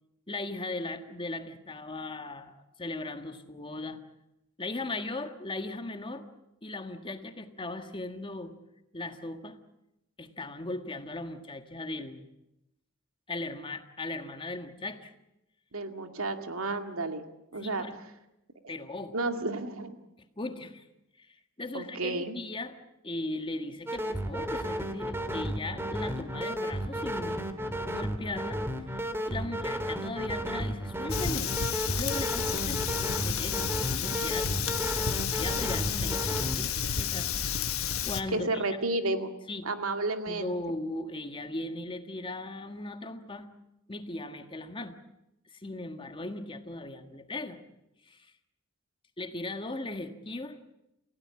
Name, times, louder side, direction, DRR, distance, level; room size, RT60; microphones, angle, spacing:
voice 1, 0.3-4.0 4.6-6.2 6.6-8.6 8.9-9.6 10.2-12.2 13.3-15.1 17.5-18.0 18.7-19.2 20.4-20.8 21.2-22.7 23.0-27.4 27.9-28.6 28.9-31.5 31.9-32.8 33.2-34.5 35.3-37.3 38.0-38.6 39.5-39.7 40.3-43.5 43.9-45.0 45.5-47.6 48.1-48.3 49.2-50.6, left 2 dB, 25° left, 7 dB, 1.7 m, -38 dB
voice 2, 15.7-17.8 18.6-18.7 19.1-20.0 21.7-22.4 38.3-39.3 39.6-40.7, right 2 dB, 80° right, 6 dB, 2.2 m, -32 dB
sound 1, 23.9-36.6, equal, 10° right, 2.1 m, -33 dB
Fire, 31.1-38.2, left 7 dB, 85° left, 1.4 m, -31 dB
29.0 x 16.5 x 8.8 m, 0.90 s
head